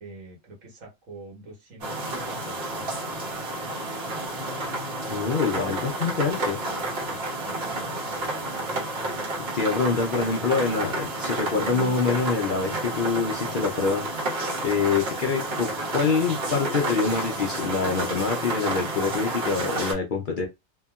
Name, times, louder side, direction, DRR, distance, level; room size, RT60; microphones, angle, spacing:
voice 1, 0.0-3.3 7.1-7.9 8.2-8.7, right 2 dB, 80° right, 1.6 m, -46 dB
sound 1, 1.8-19.9, right 2 dB, 55° right, 1.3 m, -30 dB
voice 2, 5.1-6.6 9.5-14.1 14.6-20.5, left 5 dB, 60° left, 0.5 m, -25 dB
2.8 x 2.6 x 2.3 m
omnidirectional pair, 1.3 m